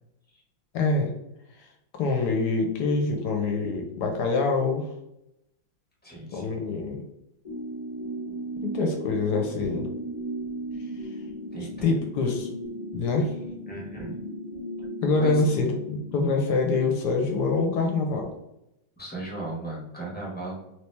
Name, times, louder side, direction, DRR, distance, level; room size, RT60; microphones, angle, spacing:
voice 1, 0.7-1.1 1.9-4.9 6.3-7.0 8.6-9.9 11.8-12.5 12.9-13.3 15.0-18.3, left 3 dB, 70° left, 3 dB, 1.0 m, -25 dB
voice 2, 6.0-6.5 11.5-11.9 13.7-14.1 15.2-15.4 19.0-20.7, right 2 dB, 10° left, -4 dB, 0.6 m, -36 dB
sound 1, 7.4-16.2, right 1 dB, 55° left, 0.4 m, -36 dB
3.2 x 3.0 x 3.2 m, 0.86 s
omnidirectional pair, 2.2 m